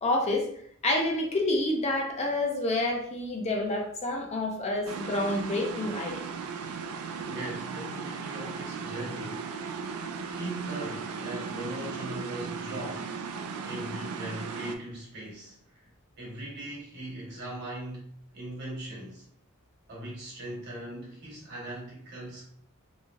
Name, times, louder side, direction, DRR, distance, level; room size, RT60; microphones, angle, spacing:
voice 1, 0.0-0.5 0.8-6.2, left 2 dB, 30° left, 1 dB, 0.5 m, -28 dB
sound 1, 4.9-14.8, right 5 dB, 80° right, 0.3 m, -37 dB
voice 2, 7.2-9.5 10.3-13.1 13.6-15.8 16.2-18.1 18.3-19.3 19.9-22.5, right 1 dB, 50° right, -4 dB, 1.2 m, -39 dB
3.1 x 2.6 x 2.3 m, 0.63 s
head